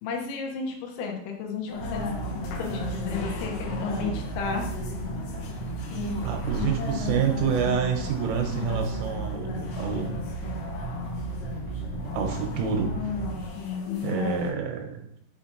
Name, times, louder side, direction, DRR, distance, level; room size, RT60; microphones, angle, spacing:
voice 1, 0.0-2.0 2.6-4.7 13.6-14.4, left 5 dB, 90° left, 2 dB, 3.6 m, -33 dB
sound 1, 1.7-14.5, left 4 dB, 70° left, 2.6 m, -35 dB
sound 2, 1.8-13.5, right 4 dB, 45° right, 2.7 m, -35 dB
voice 2, 6.2-10.2 12.1-12.9 14.0-15.0, right 7 dB, 85° right, 3 dB, 3.4 m, -28 dB
6.7 x 5.8 x 2.8 m, 0.72 s
omnidirectional pair, 5.8 m